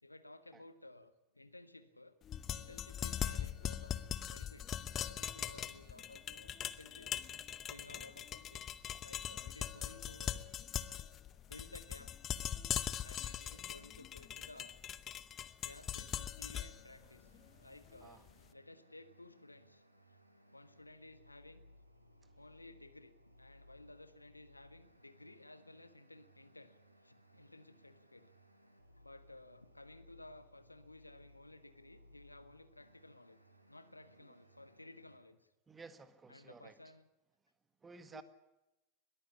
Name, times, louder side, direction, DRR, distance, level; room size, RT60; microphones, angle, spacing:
voice 1, 0.0-2.2 2.5-3.9 4.3-7.2 7.7-8.7 9.0-10.4 11.4-12.2 13.0-14.8 15.6-17.3 17.6-19.8 20.1-20.2 20.5-21.6 22.3-28.3 28.9-33.4 33.7-35.5 36.3-37.1 38.1-38.2, left 2 dB, 85° left, 1.4 m, -56 dB
sound 1, 2.2-18.3, left 10 dB, 30° left, 0.9 m, -41 dB
sound 2, 15.6-35.2, equal, 85° right, 2.7 m, -64 dB
voice 2, 35.7-36.8 37.8-38.2, right 4 dB, 15° right, 1.8 m, -55 dB
21.5 x 14.5 x 9.9 m
figure-of-eight pair, 90°, 0 cm